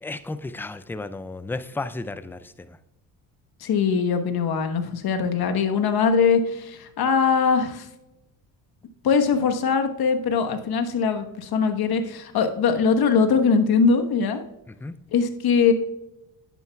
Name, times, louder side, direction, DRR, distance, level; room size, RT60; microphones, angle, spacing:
voice 1, 0.0-2.8 14.7-15.0, left 2 dB, 5° left, 14 dB, 0.3 m, -34 dB
voice 2, 3.6-7.9 9.0-14.4 15.1-15.7, left 5 dB, 50° left, 7 dB, 1.2 m, -21 dB
10.5 x 9.3 x 2.3 m, 0.92 s
hypercardioid pair, 65°, 47 cm